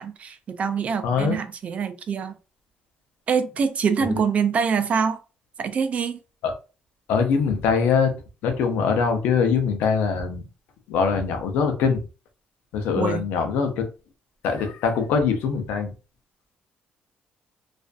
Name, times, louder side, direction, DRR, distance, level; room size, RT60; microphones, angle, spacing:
voice 1, 0.0-2.4 3.3-5.2 5.6-6.2 13.0-13.3, right 6 dB, 45° right, 0.4 m, -25 dB
voice 2, 1.0-1.4 4.0-4.2 6.4-6.5 7.1-8.1 8.4-10.4 10.9-12.0 12.7-13.9 14.4-15.9, left 5 dB, 90° left, 0.6 m, -22 dB
2.5 x 2.4 x 2.2 m
cardioid pair, 100°, 3 cm